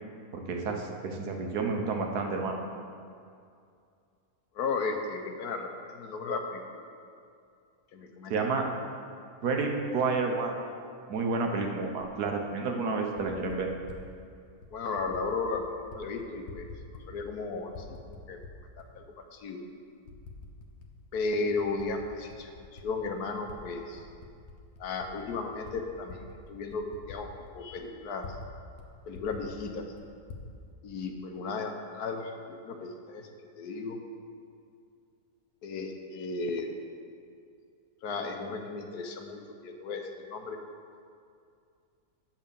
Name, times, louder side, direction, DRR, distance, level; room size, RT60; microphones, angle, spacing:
voice 1, 0.3-2.6 8.3-8.7 9.4-10.5 11.1-13.7, right 4 dB, 75° right, 2 dB, 1.5 m, -30 dB
voice 2, 4.5-6.8 7.9-8.3 14.7-16.7 17.1-18.4 18.8-19.0 19.3-19.6 21.1-24.0 24.8-28.3 29.1-29.9 30.8-33.3 33.5-34.0 35.6-36.7 38.0-40.6, left 3 dB, 75° left, 4 dB, 1.4 m, -35 dB
Typing, 12.0-12.1 13.0-14.0 14.6-15.2 15.5-16.0 16.3-17.4 17.7-18.9 19.4-19.5 20.1-20.9 21.2-23.6 23.9-28.5 28.8-28.9 29.1-30.5, left 4 dB, 50° left, 1.0 m, -47 dB
8.2 x 5.6 x 7.0 m, 2.4 s
omnidirectional pair, 1.7 m